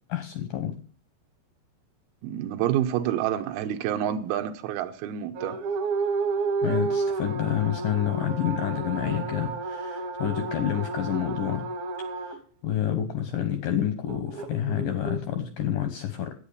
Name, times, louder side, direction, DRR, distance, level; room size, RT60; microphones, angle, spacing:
voice 1, 0.1-0.7 6.6-11.7 12.3-12.4 12.6-16.4, left 10 dB, 80° left, 8 dB, 2.0 m, -28 dB
voice 2, 2.2-5.6, right 10 dB, 80° right, 5 dB, 2.4 m, -28 dB
sound 1, 5.4-12.4 14.1-15.2, right 4 dB, 65° right, 2.7 m, -31 dB
10.5 x 8.8 x 6.7 m, 0.43 s
omnidirectional pair, 5.2 m